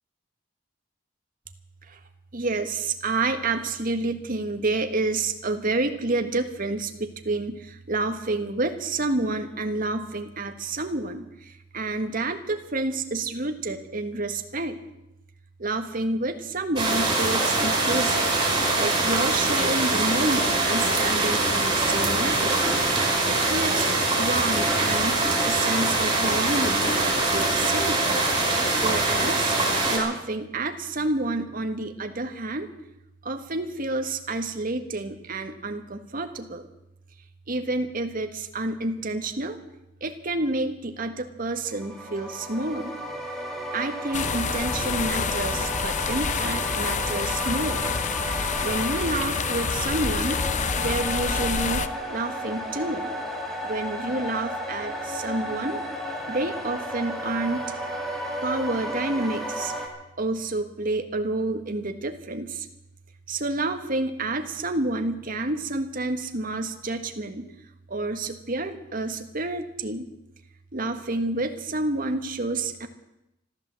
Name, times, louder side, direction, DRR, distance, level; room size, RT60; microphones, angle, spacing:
voice 1, 2.3-14.8 15.6-18.3 18.7-22.6 23.3-28.0 28.7-29.6 29.9-32.7 33.2-36.7 37.5-39.6 40.0-42.9 43.7-47.9 48.4-50.4 50.8-53.1 53.6-55.8 56.3-57.6 58.4-59.7 60.2-62.7 63.3-67.5 67.9-70.1 70.7-72.9, right 2 dB, 45° right, 7 dB, 1.5 m, -29 dB
sound 1, 16.8-30.0, right 2 dB, 25° right, 4.8 m, -23 dB
sound 2, 41.7-59.9, equal, ahead, 2.7 m, -33 dB
sound 3, 44.1-51.9, left 5 dB, 40° left, 0.7 m, -28 dB
14.5 x 12.5 x 7.6 m, 0.88 s
head